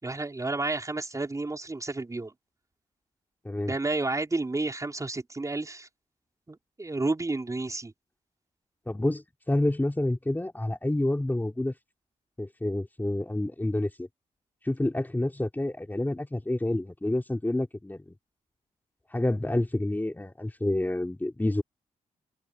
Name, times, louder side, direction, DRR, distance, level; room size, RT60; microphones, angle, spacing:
voice 1, 0.0-2.3 3.7-5.9 6.5-7.9, right 2 dB, 25° right, 5.6 m, -31 dB
voice 2, 8.9-11.7 12.4-14.1 14.6-18.0 19.1-21.6, left 1 dB, 15° left, 4.4 m, -28 dB
cardioid pair, 70°, 13 cm